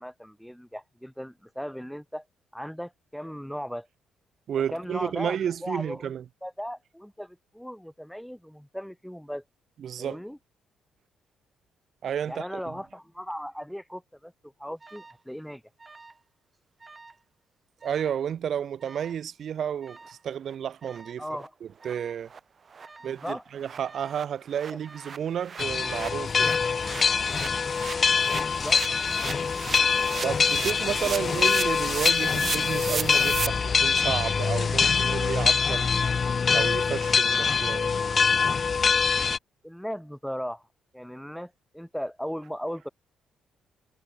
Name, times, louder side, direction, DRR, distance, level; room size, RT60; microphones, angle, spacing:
voice 1, 0.0-2.2 2.5-3.9 4.7-6.1 6.4-9.4 10.0-10.4 12.3-14.3 14.6-15.6 21.2-21.5 23.2-23.4 24.7-24.8 28.5-28.8 39.6-40.6 40.9-42.9, equal, ahead, 2.7 m, -37 dB
voice 2, 4.5-6.2 9.8-10.2 12.0-12.5 17.8-21.2 21.6-22.3 23.0-26.5 30.2-36.2 36.5-37.9, right 9 dB, 60° right, 1.2 m, -31 dB
Alarm, 14.8-15.2 15.8-16.3 16.5-17.2 17.8-18.2 18.8-19.2 19.8-20.2 20.8-21.2 21.8-22.2 22.8-23.2 23.8-24.2 24.8-25.2 25.8-26.3 26.8-27.2 27.8-28.2 28.8-29.2 29.8-30.2 30.8-31.3 31.8-32.3 32.8-33.3, right 3 dB, 25° right, 2.6 m, -50 dB
sound 1, 20.5-20.6 20.9-21.0 21.4-21.5 21.8-21.9 22.3-22.4 22.7-22.9 23.2-23.3 23.6-33.5, right 6 dB, 40° right, 2.3 m, -37 dB
sound 2, 25.6-39.4, left 5 dB, 40° left, 0.3 m, -24 dB
cardioid pair, 90°, 0 cm